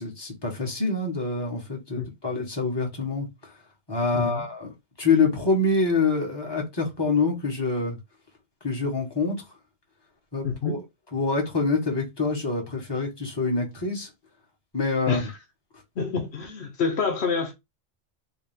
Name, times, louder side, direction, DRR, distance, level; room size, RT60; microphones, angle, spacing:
voice 1, 0.0-3.5 3.9-4.7 5.0-8.0 8.6-9.4 10.3-10.8 11.1-14.1 14.7-15.3, left 3 dB, 25° left, 1.4 m, -26 dB
voice 2, 4.1-4.5 10.4-10.8 15.1-15.3 16.0-17.5, left 5 dB, 70° left, 1.1 m, -27 dB
4.7 x 2.3 x 3.4 m
omnidirectional pair, 1.1 m